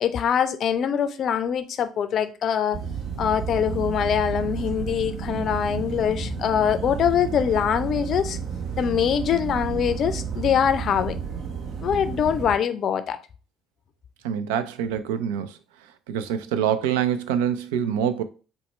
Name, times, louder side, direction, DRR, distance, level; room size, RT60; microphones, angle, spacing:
voice 1, 0.0-2.8 3.2-8.4 8.8-11.2 11.8-13.2, left 8 dB, 55° left, 0.4 m, -23 dB
sound 1, 2.7-12.6, right 6 dB, 60° right, 0.7 m, -31 dB
voice 2, 14.2-15.6 16.1-18.2, right 9 dB, 75° right, 0.3 m, -25 dB
4.1 x 2.2 x 4.2 m
hypercardioid pair, 55°, 0 cm